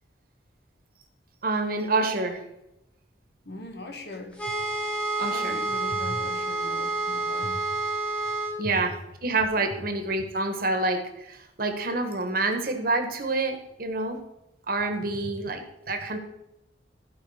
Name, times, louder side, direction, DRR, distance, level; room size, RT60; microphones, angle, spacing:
voice 1, 1.4-2.4 5.2-5.6 8.6-11.0 11.3-14.2 14.7-16.2, right 2 dB, 50° right, 6 dB, 1.4 m, -27 dB
voice 2, 3.4-4.5 5.2-7.6 9.7-9.8 15.2-15.3, left 1 dB, 60° left, 5 dB, 1.5 m, -39 dB
sound 1, 4.4-8.6, right 2 dB, 5° left, 1.3 m, -29 dB
15.0 x 5.2 x 4.9 m, 0.88 s
head